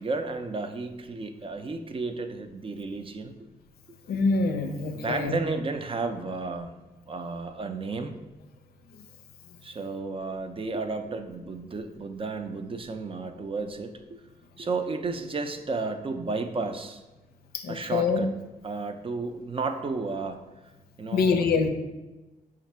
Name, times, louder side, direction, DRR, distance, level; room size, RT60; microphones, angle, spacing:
voice 1, 0.0-3.3 4.9-6.7 7.1-8.1 9.6-14.2 14.6-17.0 17.7-18.3 18.6-20.4 21.0-21.6, right 3 dB, 35° right, 7 dB, 0.5 m, -32 dB
voice 2, 4.1-5.3 17.5-18.3 21.1-21.7, left 4 dB, 80° left, 6 dB, 0.5 m, -25 dB
4.3 x 2.5 x 4.2 m, 1.1 s
supercardioid pair, 55°, 16 cm